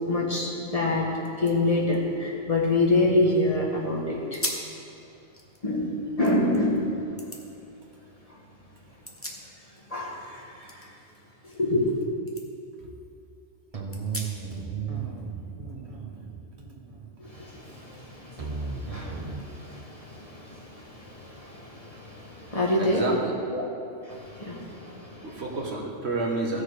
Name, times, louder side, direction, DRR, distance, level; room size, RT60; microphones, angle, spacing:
voice 1, 0.1-1.1 1.4-4.4 5.6-5.9 6.2-7.2 9.9-10.8 11.4-11.9 17.2-23.0 23.5-23.6 24.1-25.4, left 2 dB, 30° left, -4 dB, 1.6 m, -27 dB
sound 1, 0.8-0.9 1.2-3.4 3.8-3.9 4.3-4.8 5.2-6.6 7.2-7.4 8.8-9.9 10.2-12.0 12.3-12.5 12.9-13.0 13.9-14.6, left 1 dB, 10° left, 0.9 m, -39 dB
sound 2, 13.7-19.4, right 5 dB, 30° right, 0.9 m, -35 dB
voice 2, 22.8-23.3 25.2-26.6, right 2 dB, 60° right, 0 dB, 1.4 m, -30 dB
15.5 x 6.6 x 4.8 m, 2.6 s
omnidirectional pair, 1.3 m